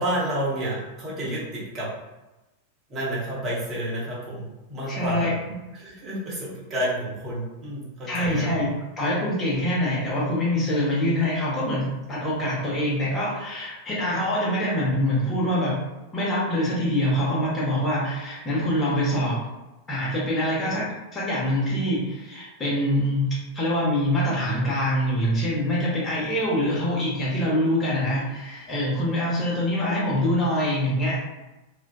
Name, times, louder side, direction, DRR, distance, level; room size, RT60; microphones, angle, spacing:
voice 1, 0.0-1.9 2.9-5.3 5.7-8.6, right 1 dB, 25° right, -6 dB, 0.9 m, -30 dB
voice 2, 4.8-5.6 8.1-15.8 16.1-19.4 19.9-31.2, equal, 20° left, -6 dB, 0.9 m, -25 dB
2.4 x 2.2 x 2.3 m, 1.0 s
figure-of-eight pair, 90°, 0 cm